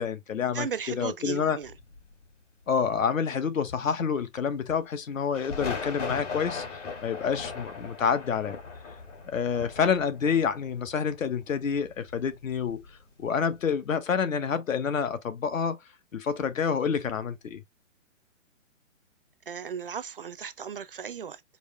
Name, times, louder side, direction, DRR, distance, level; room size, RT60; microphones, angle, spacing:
voice 1, 0.0-1.6 2.7-8.6 9.3-12.8 13.2-15.8 16.1-17.6, left 6 dB, 85° left, 1.3 m, -28 dB
voice 2, 0.5-1.7 19.5-21.4, right 7 dB, 45° right, 0.4 m, -36 dB
sound 1, 1.6-2.3 5.3-13.1 13.4-13.6, left 4 dB, 65° left, 2.8 m, -39 dB
4.8 x 3.1 x 3.2 m
hypercardioid pair, 170°, 39 cm